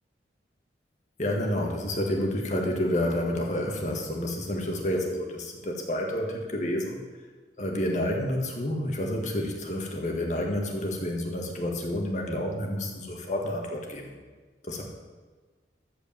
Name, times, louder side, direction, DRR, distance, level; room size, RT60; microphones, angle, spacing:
voice 1, 1.2-7.0 7.6-14.2 14.6-14.8, left 1 dB, 45° left, 1 dB, 1.8 m, -29 dB
14.0 x 5.1 x 7.3 m, 1.4 s
head